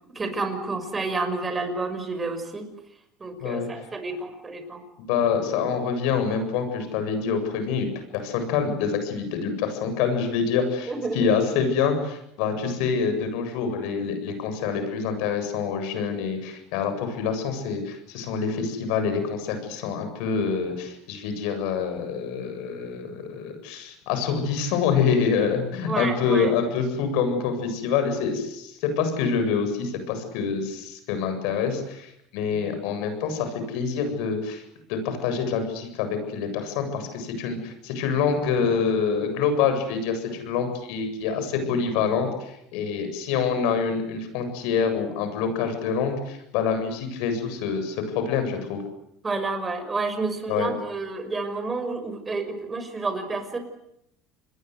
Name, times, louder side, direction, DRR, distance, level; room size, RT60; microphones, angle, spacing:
voice 1, 0.1-2.7 3.2-4.8 10.9-11.2 25.9-26.5 49.2-53.6, right 3 dB, 25° right, 8 dB, 6.1 m, -30 dB
voice 2, 3.4-3.7 5.0-34.6 34.9-48.8 50.5-50.7, left 6 dB, 75° left, 8 dB, 7.8 m, -26 dB
28.5 x 21.5 x 8.1 m, 0.79 s
supercardioid pair, 95°, 0 cm